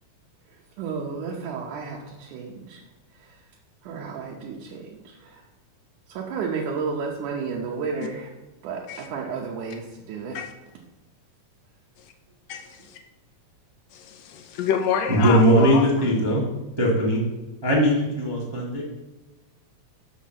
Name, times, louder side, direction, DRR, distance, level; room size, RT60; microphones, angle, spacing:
voice 1, 0.5-2.8 3.1-3.4 3.8-5.4 6.1-8.3 8.6-10.4 12.7-12.8, right 5 dB, 80° right, -2 dB, 2.4 m, -32 dB
voice 2, 12.5-13.0 13.9-15.9, left 7 dB, 75° left, 5 dB, 1.7 m, -28 dB
voice 3, 15.1-16.4 16.8-17.2 17.6-18.8, equal, 40° right, -4 dB, 0.3 m, -20 dB
6.4 x 5.8 x 6.3 m, 1.1 s
omnidirectional pair, 3.5 m